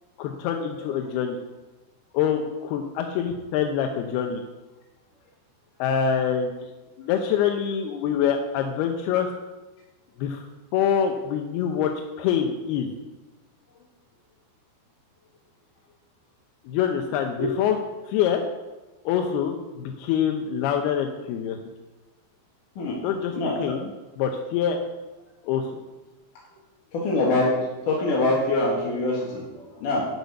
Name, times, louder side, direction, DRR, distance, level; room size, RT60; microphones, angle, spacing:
voice 1, 0.2-1.4 2.1-4.4 5.8-6.5 7.0-9.3 10.2-10.5 10.7-11.9 12.2-12.9 16.7-17.8 18.0-18.4 19.1-21.6 23.0-23.3 23.6-23.9 24.2-24.8 25.4-25.8, left 8 dB, 75° left, 4 dB, 2.4 m, -25 dB
voice 2, 23.3-23.8 26.9-27.6 27.8-30.1, left 2 dB, 55° left, -5 dB, 2.9 m, -24 dB
12.0 x 6.8 x 8.1 m, 1.1 s
omnidirectional pair, 5.3 m